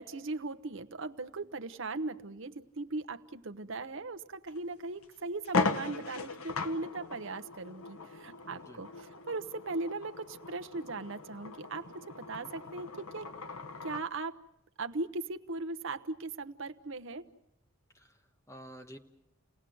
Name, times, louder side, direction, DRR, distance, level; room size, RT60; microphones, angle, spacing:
voice 1, 0.0-11.9 12.2-13.3 13.8-14.4 14.8-17.2, right 3 dB, 60° right, 8 dB, 0.9 m, -38 dB
sound 1, 4.5-4.6 5.0-5.1 5.4-14.1, left 4 dB, 75° left, 1.2 m, -38 dB
voice 2, 8.5-8.9 17.9-19.0, equal, 15° left, 5 dB, 1.3 m, -51 dB
30.0 x 18.5 x 7.8 m, 0.85 s
head